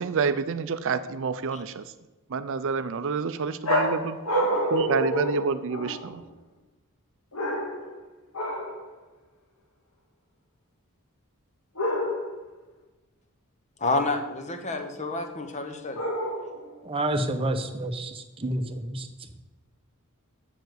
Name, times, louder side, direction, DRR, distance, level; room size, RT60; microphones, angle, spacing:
voice 1, 0.0-1.8 2.3-4.2 4.7-6.2, right 5 dB, 60° right, 12 dB, 0.5 m, -28 dB
sound 1, 3.6-6.1 7.3-8.0 8.3-8.8 11.7-12.4 15.9-16.7, equal, 70° left, 2.1 m, -28 dB
voice 2, 13.8-16.0, left 2 dB, 30° left, 6 dB, 1.1 m, -29 dB
voice 3, 16.8-19.1, right 1 dB, 25° right, 6 dB, 0.8 m, -29 dB
7.0 x 6.6 x 7.8 m, 1.1 s
head